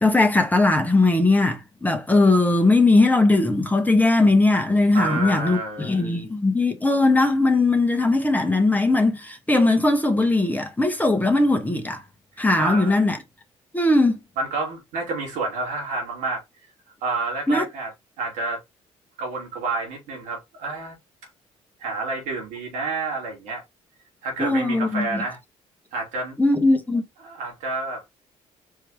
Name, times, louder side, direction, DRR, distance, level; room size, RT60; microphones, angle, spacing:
voice 1, 0.0-12.0 12.4-13.2 13.7-14.2 17.5-17.6 24.4-25.2 26.4-27.0, left 2 dB, 10° left, 1.4 m, -19 dB
voice 2, 4.9-6.1 12.6-13.0 14.4-16.4 17.0-17.9 18.2-18.6 19.2-20.9 21.8-23.6 24.2-25.4 25.9-26.4 27.2-28.1, right 3 dB, 80° right, 2.5 m, -29 dB
4.7 x 3.2 x 3.1 m
supercardioid pair, 60°, 13 cm